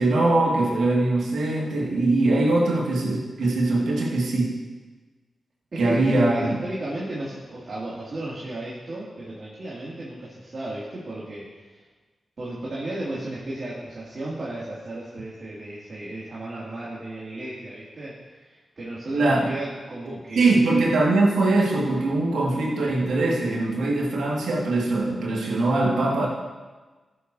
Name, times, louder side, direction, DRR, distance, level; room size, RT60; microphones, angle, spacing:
voice 1, 0.0-4.6 5.8-6.6 19.1-19.5 20.4-26.3, right 2 dB, 80° right, -3 dB, 2.1 m, -22 dB
voice 2, 5.7-11.8 12.4-20.6, right 1 dB, 55° right, -8 dB, 2.6 m, -34 dB
14.0 x 7.6 x 2.8 m, 1.3 s
supercardioid pair, 40°, 0 cm